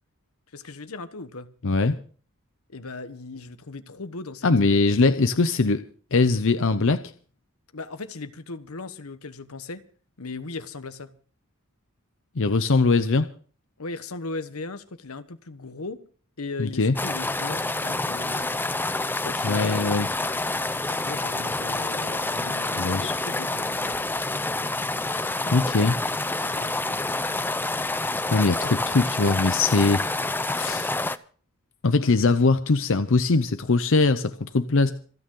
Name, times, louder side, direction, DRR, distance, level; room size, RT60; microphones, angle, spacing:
voice 1, 0.5-1.5 2.7-5.0 7.7-9.8 10.2-11.1 13.8-16.0 16.4-18.6 19.2-19.9 21.0-24.0 25.2-25.6 26.4-27.0 32.0-32.2, left 3 dB, 85° left, 1.2 m, -38 dB
voice 2, 1.6-2.0 4.4-5.8 6.1-7.0 12.4-13.3 16.6-16.9 19.4-20.1 22.8-23.1 25.5-26.0 28.3-30.1 30.6-30.9 31.8-34.9, left 3 dB, 65° left, 0.8 m, -21 dB
sound 1, 17.0-31.2, left 2 dB, 10° left, 0.6 m, -28 dB
27.0 x 9.2 x 3.8 m
head